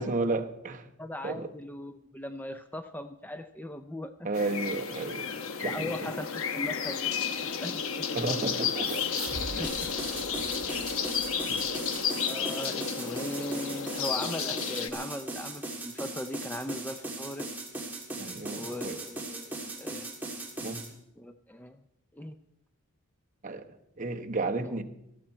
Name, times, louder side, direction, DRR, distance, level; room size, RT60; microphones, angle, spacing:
voice 1, 0.0-0.9 1.2-1.5 4.2-5.3 5.6-5.9 8.1-9.0 9.5-9.7 11.5-11.6 18.2-19.0 20.6-20.8 23.4-23.7 24.0-24.8, right 3 dB, 35° right, 5 dB, 1.0 m, -32 dB
voice 2, 1.0-4.1 5.7-7.1 7.4-7.8 8.1-8.3 9.6-9.9 11.2-11.6 12.3-17.5 18.5-20.1 21.2-21.8 22.1-22.4 24.6-24.7, left 1 dB, 10° left, 8 dB, 0.4 m, -39 dB
sound 1, 4.3-14.9, left 6 dB, 65° left, 1.0 m, -32 dB
sound 2, 8.8-12.0, right 4 dB, 70° right, 1.2 m, -43 dB
sound 3, 9.6-20.9, right 2 dB, 10° right, 2.1 m, -38 dB
18.0 x 14.0 x 4.4 m, 0.83 s
head